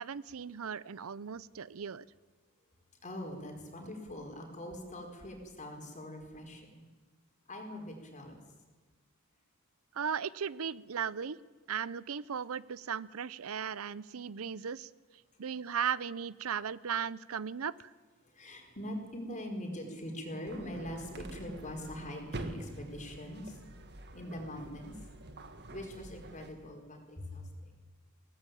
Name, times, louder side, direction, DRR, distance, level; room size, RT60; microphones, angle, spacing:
voice 1, 0.0-2.1 9.9-11.4 11.7-14.9 15.4-17.9, right 7 dB, 85° right, 19 dB, 0.6 m, -36 dB
voice 2, 3.0-6.8 7.5-8.4 18.2-23.6 24.0-27.7, equal, 35° left, 3 dB, 4.6 m, -43 dB
sound 1, 20.5-26.5, right 1 dB, 55° right, 1.8 m, -47 dB
22.5 x 18.0 x 9.2 m, 1.3 s
head